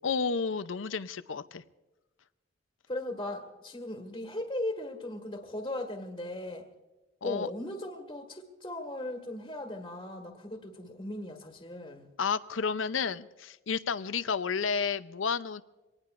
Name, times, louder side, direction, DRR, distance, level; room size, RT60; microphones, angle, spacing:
voice 1, 0.0-1.6 7.2-7.5 12.2-15.6, left 5 dB, 85° left, 13 dB, 0.7 m, -31 dB
voice 2, 2.9-6.6 7.2-12.1, left 1 dB, 25° left, 2 dB, 1.7 m, -38 dB
24.0 x 19.0 x 2.6 m, 1.1 s
head